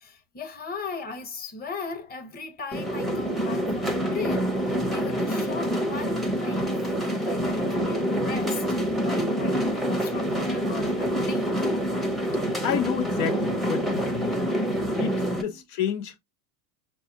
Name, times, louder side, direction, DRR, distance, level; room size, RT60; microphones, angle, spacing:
voice 1, 0.0-8.6 9.0-11.5 15.2-15.6, left 4 dB, 20° left, 1.0 m, -38 dB
sound 1, 2.7-15.4, equal, ahead, 0.6 m, -26 dB
voice 2, 12.6-14.4 15.0-16.2, left 9 dB, 75° left, 0.9 m, -30 dB
5.5 x 2.3 x 2.8 m
supercardioid pair, 120°, 47 cm